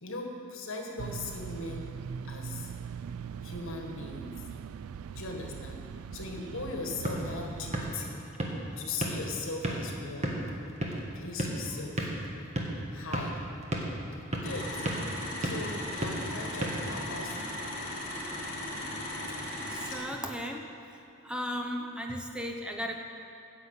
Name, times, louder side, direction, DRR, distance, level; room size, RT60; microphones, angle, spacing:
voice 1, 0.0-1.9 2.2-2.7 3.4-4.3 5.1-5.8 6.1-8.2 8.8-10.3 10.9-12.1 12.9-13.3 14.3-14.7 15.4-17.3, left 3 dB, 65° left, 1 dB, 1.6 m, -39 dB
sound 1, 1.0-7.9, right 7 dB, 85° right, 0.3 m, -41 dB
sound 2, 6.7-17.5, right 1 dB, 35° right, 1.4 m, -36 dB
sound 3, 14.4-20.0, left 1 dB, 45° left, 3.1 m, -37 dB
voice 2, 19.7-20.6 21.2-22.9, equal, 5° right, 2 dB, 0.6 m, -35 dB
9.8 x 7.0 x 8.1 m, 2.9 s
head